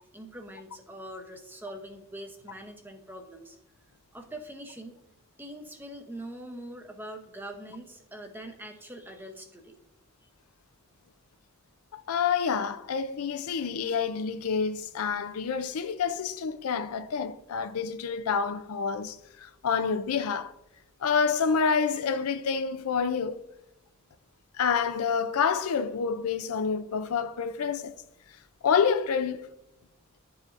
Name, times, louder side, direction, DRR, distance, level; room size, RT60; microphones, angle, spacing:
voice 1, 0.1-3.6 4.1-5.0 5.4-9.8 10.2-10.3, right 1 dB, 10° right, 0.7 m, -43 dB
voice 2, 11.9-20.5 21.0-23.4 24.6-27.9 28.6-29.5, left 6 dB, 85° left, 0.5 m, -28 dB
11.0 x 4.9 x 2.5 m
head